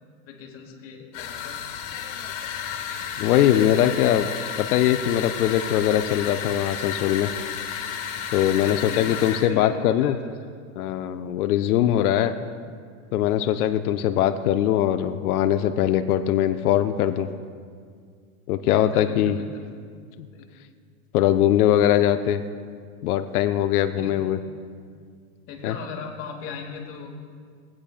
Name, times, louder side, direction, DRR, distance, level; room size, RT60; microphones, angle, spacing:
voice 1, 0.2-1.6 8.6-10.3 12.2-12.3 18.7-19.7 20.3-20.5 24.0-24.2 25.5-27.1, left 5 dB, 30° left, 1 dB, 1.4 m, -38 dB
sound 1, 1.1-9.5, left 8 dB, 55° left, 1.5 m, -32 dB
voice 2, 3.2-4.3 4.6-7.3 8.3-10.1 10.8-12.3 13.1-17.3 18.5-19.4 21.1-22.4 23.0-24.4 25.6-25.7, left 11 dB, 90° left, 9 dB, 0.6 m, -21 dB
18.0 x 8.6 x 2.4 m, 2.1 s
supercardioid pair, 145°, 43 cm